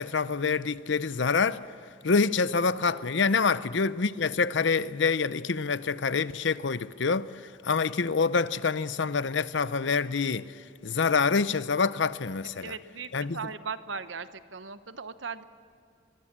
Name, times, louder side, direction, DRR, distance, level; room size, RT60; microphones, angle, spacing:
voice 1, 0.0-1.6 2.0-10.5 10.8-12.7 13.1-13.4, left 5 dB, 65° left, 0.7 m, -26 dB
voice 2, 12.4-15.4, right 5 dB, 70° right, 1.0 m, -38 dB
23.5 x 22.0 x 7.4 m
head